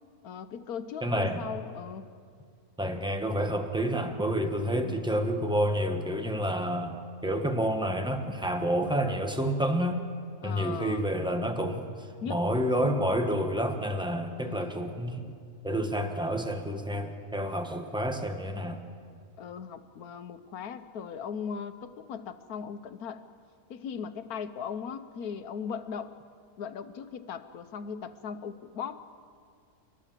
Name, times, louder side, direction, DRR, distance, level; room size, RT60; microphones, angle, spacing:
voice 1, 0.2-2.1 4.8-5.2 10.4-11.1 12.2-12.4 14.4-14.9 19.4-23.2 23.7-26.2 26.6-29.1, left 7 dB, 80° left, 11 dB, 1.4 m, -38 dB
voice 2, 1.0-1.4 2.8-10.0 10.4-15.2 15.6-18.8, equal, 5° right, 5 dB, 1.2 m, -29 dB
29.5 x 13.0 x 7.5 m, 2.2 s
omnidirectional pair, 1.5 m